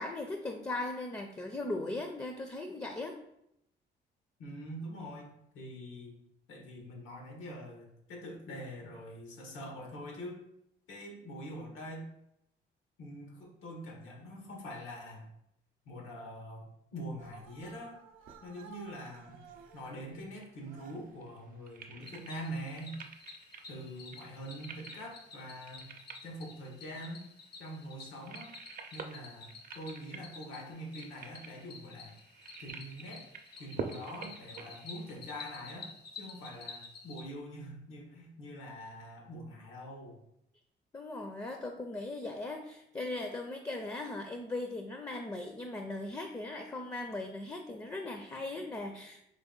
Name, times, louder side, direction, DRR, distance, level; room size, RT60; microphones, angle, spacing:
voice 1, 0.0-3.2 40.9-49.2, left 2 dB, 15° left, 4 dB, 0.4 m, -38 dB
voice 2, 4.4-5.3 5.5-6.1 6.5-10.4 10.9-12.1 13.0-15.3 15.8-18.0 18.4-19.4 19.7-23.0 23.7-26.0 26.2-27.3 27.6-28.6 28.9-32.1 32.6-33.3 33.6-40.2, equal, 90° left, 0 dB, 1.2 m, -44 dB
sound 1, 17.2-19.9 20.6-21.2, right 4 dB, 90° right, 0.6 m, -54 dB
sound 2, 19.1-35.7, right 5 dB, 45° right, 0.5 m, -48 dB
Cricket, 22.0-37.2, left 4 dB, 55° left, 0.7 m, -51 dB
3.9 x 2.9 x 3.8 m, 0.79 s
cardioid pair, 90°, 20 cm